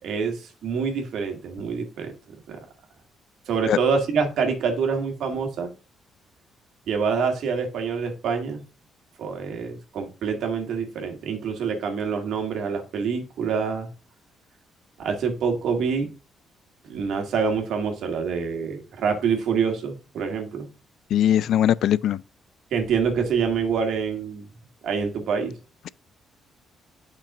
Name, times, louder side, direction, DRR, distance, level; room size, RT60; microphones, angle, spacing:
voice 1, 0.0-2.1 2.5-2.6 3.5-5.7 6.9-8.6 9.2-13.9 15.0-16.1 16.8-20.7 22.7-24.5 24.8-25.5, right 5 dB, 75° right, 2.0 m, -26 dB
voice 2, 21.1-22.2, left 11 dB, 75° left, 0.3 m, -20 dB
8.7 x 5.9 x 2.5 m
cardioid pair, 90°, 0 cm